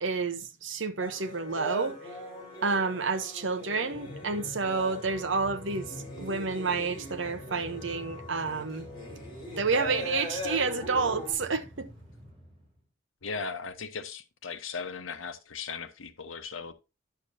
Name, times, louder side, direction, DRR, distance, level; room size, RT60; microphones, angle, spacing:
voice 1, 0.0-2.1 2.6-8.9 9.6-11.9, right 4 dB, 70° right, 0.9 m, -30 dB
sound 1, 1.0-11.3, equal, 20° left, 4.3 m, -40 dB
Train, 3.9-12.8, left 1 dB, 30° right, 2.8 m, -47 dB
voice 2, 13.2-16.7, left 5 dB, 85° left, 1.0 m, -37 dB
10.5 x 6.8 x 2.7 m
head